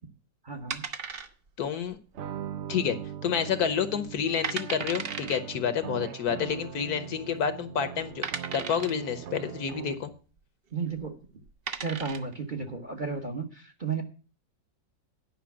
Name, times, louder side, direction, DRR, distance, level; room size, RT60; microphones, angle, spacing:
voice 1, 0.4-0.8 10.7-11.1 11.8-14.0, right 5 dB, 35° right, 4 dB, 1.0 m, -33 dB
sound 1, 0.7-1.7 1.9-2.0 2.6-3.1 3.4-3.5 4.1-4.2 4.4-5.4 6.5-6.6 7.3-7.4 8.2-9.1 10.9-11.1 11.5-12.3, right 6 dB, 50° right, 0.7 m, -35 dB
voice 2, 1.6-2.0 2.7-3.0 3.2-8.2 8.5-10.1, left 7 dB, 65° left, 11 dB, 1.3 m, -29 dB
sound 2, 2.1-10.2, right 9 dB, 80° right, 0.6 m, -40 dB
10.5 x 5.5 x 7.2 m, 0.37 s
omnidirectional pair, 1.9 m